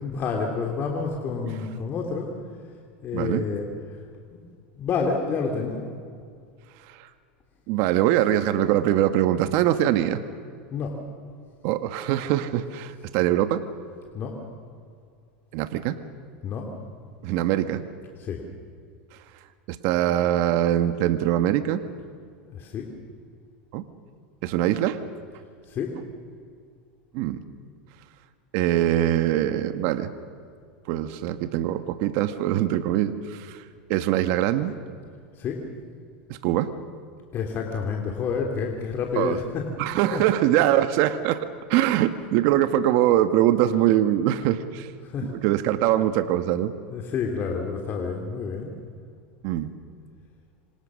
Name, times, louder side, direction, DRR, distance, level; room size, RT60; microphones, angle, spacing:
voice 1, 0.0-2.3 3.0-3.7 4.3-4.5 4.8-5.9 10.7-11.0 14.1-14.4 16.4-16.7 18.2-18.4 22.4-22.9 25.7-26.0 35.4-35.6 37.3-39.7 40.1-40.2 45.0-45.3 46.9-48.7, left 5 dB, 40° left, 1 dB, 3.2 m, -29 dB
voice 2, 3.1-3.4 6.9-7.1 7.7-10.2 11.6-13.6 15.5-16.0 17.2-17.8 19.7-21.8 23.7-23.8 24.4-25.0 27.1-27.4 28.5-30.1 30.9-33.6 33.9-34.8 36.4-36.7 39.2-39.4 39.8-44.9 45.2-46.7 49.4-49.7, right 12 dB, 60° right, 10 dB, 1.4 m, -23 dB
27.0 x 26.0 x 6.4 m, 2.3 s
hypercardioid pair, 110°, 6 cm